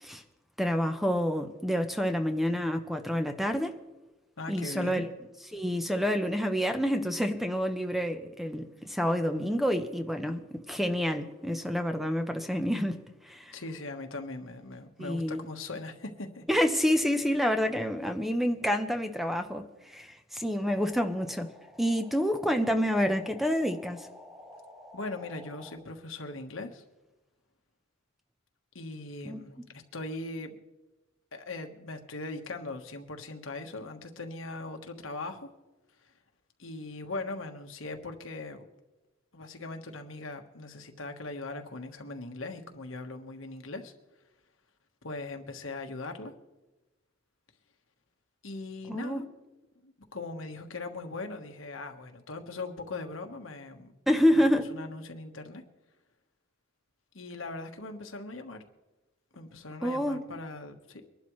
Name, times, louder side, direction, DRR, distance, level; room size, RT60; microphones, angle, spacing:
voice 1, 0.6-3.7 4.5-5.1 5.5-13.0 13.2-13.5 15.0-15.5 16.5-21.5 21.8-24.1 29.2-29.4 48.9-49.2 54.1-54.7 59.8-60.2, equal, ahead, 0.8 m, -28 dB
voice 2, 4.4-5.0 13.5-16.4 24.9-26.8 28.7-29.6 29.9-30.6 31.3-35.5 36.6-38.7 39.3-43.9 45.0-46.3 48.4-49.3 49.8-53.9 54.3-55.6 57.1-58.6 59.3-61.1, left 2 dB, 85° left, 1.4 m, -40 dB
sound 1, 20.6-25.8, left 1 dB, 20° right, 3.4 m, -51 dB
23.5 x 11.5 x 3.2 m
head